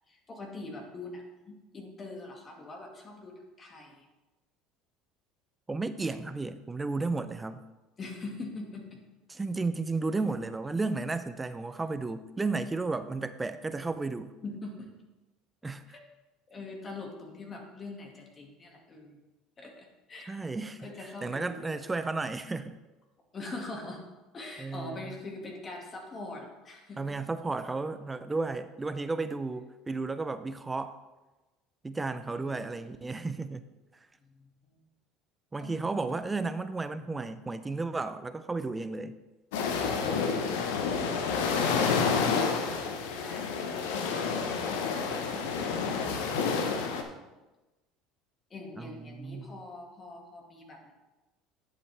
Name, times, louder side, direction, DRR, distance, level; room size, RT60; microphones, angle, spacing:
voice 1, 0.1-4.1 8.0-9.0 14.4-14.9 15.9-16.0 16.5-19.2 19.6-20.4 20.8-21.9 23.3-24.0 24.3-27.1 32.3-32.9 34.2-34.8 35.6-36.2 40.0-45.8 48.5-50.9, left 2 dB, 30° left, 1 dB, 2.0 m, -44 dB
voice 2, 5.7-7.6 9.4-14.3 15.6-15.8 20.3-20.9 21.2-22.8 24.6-25.2 27.0-31.0 31.8-33.6 35.5-39.2 48.8-49.6, right 3 dB, 15° right, 12 dB, 0.5 m, -33 dB
sound 1, 39.5-47.0, left 5 dB, 85° left, 1.0 m, -29 dB
11.0 x 7.5 x 3.4 m, 1.1 s
supercardioid pair, 100°, 0 cm